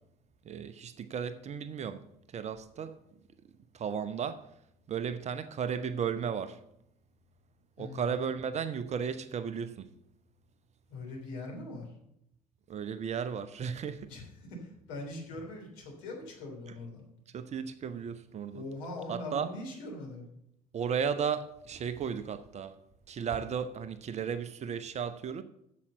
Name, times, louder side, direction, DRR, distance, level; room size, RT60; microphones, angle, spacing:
voice 1, 0.4-2.0 2.3-2.9 3.7-4.4 4.9-6.6 7.8-9.8 12.7-14.1 17.3-18.6 19.1-19.5 20.7-22.8 23.1-25.4, right 7 dB, 35° right, 0.8 m, -34 dB
voice 2, 7.8-8.2 10.9-12.0 14.1-17.0 18.5-20.3, left 2 dB, 60° left, 3.5 m, -42 dB
8.5 x 7.3 x 6.9 m
figure-of-eight pair, 60°, 19 cm